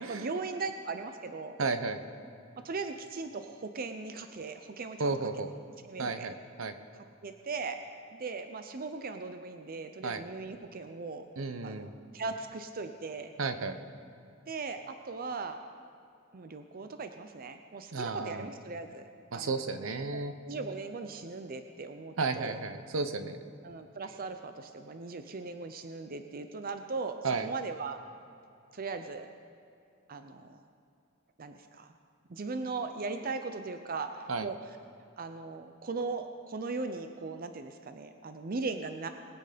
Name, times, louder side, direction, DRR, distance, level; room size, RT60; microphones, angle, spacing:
voice 1, 0.0-1.6 2.6-5.1 5.8-6.3 7.2-7.8 8.1-11.2 11.6-11.9 12.1-13.3 14.5-15.6 16.3-19.1 19.3-19.7 20.1-20.2 20.4-22.6 23.6-28.0 28.7-29.3 30.1-30.6 31.4-31.9 32.3-34.6 35.2-39.1, right 4 dB, 45° right, 8 dB, 0.6 m, -38 dB
voice 2, 1.6-2.0 5.0-5.5 6.0-6.7 10.0-10.2 11.4-11.9 13.4-13.8 17.9-18.5 19.3-20.3 22.2-23.4 27.2-27.5 34.3-34.5, right 4 dB, 75° right, 10 dB, 0.8 m, -33 dB
21.0 x 8.1 x 5.1 m, 2.5 s
head